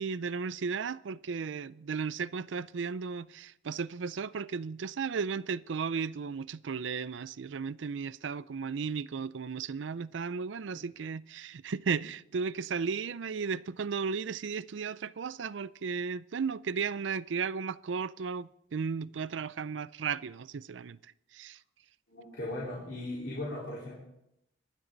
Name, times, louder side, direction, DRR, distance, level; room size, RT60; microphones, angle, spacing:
voice 1, 0.0-21.0 21.3-21.6, right 5 dB, 80° right, 0.5 m, -35 dB
voice 2, 22.1-24.0, left 1 dB, 65° left, 4.3 m, -38 dB
26.0 x 11.0 x 4.0 m
head